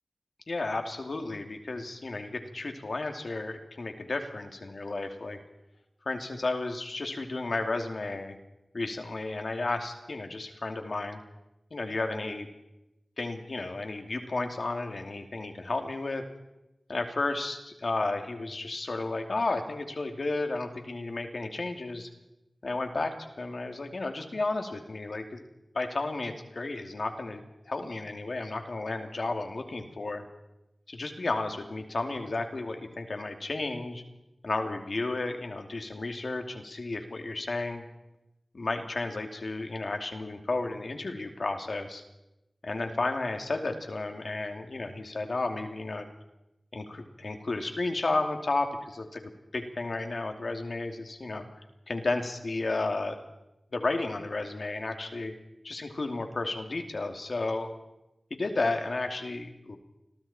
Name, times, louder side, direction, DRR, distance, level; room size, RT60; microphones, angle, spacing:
voice 1, 0.5-5.4 6.1-8.4 8.7-11.2 11.7-12.5 13.2-16.2 16.9-22.1 22.6-23.1 23.4-25.4 25.7-30.2 30.9-34.0 34.4-37.8 38.5-42.0 42.6-46.1 46.7-51.4 51.9-53.2 53.7-55.3 55.6-57.7 58.3-59.8, left 2 dB, 70° left, 4 dB, 2.8 m, -33 dB
29.0 x 23.0 x 4.5 m, 0.93 s
cardioid pair, 45°, 0 cm